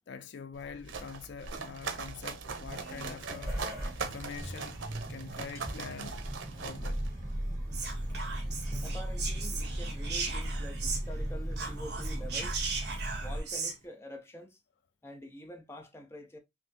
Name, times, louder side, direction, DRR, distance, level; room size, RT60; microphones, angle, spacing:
voice 1, 0.1-3.6 4.0-4.8 5.1-6.2 6.6-7.0 10.3-10.5, left 6 dB, 65° left, 0.3 m, -44 dB
sound 1, 0.5-7.5, right 4 dB, 90° right, 0.7 m, -41 dB
sound 2, 2.6-13.4, right 1 dB, 20° right, 1.3 m, -37 dB
Whispering, 7.7-11.3 11.5-13.8, right 4 dB, 60° right, 1.4 m, -37 dB
voice 2, 8.8-12.6 13.2-14.6 15.0-16.4, equal, 15° left, 0.6 m, -46 dB
5.5 x 2.0 x 2.7 m
head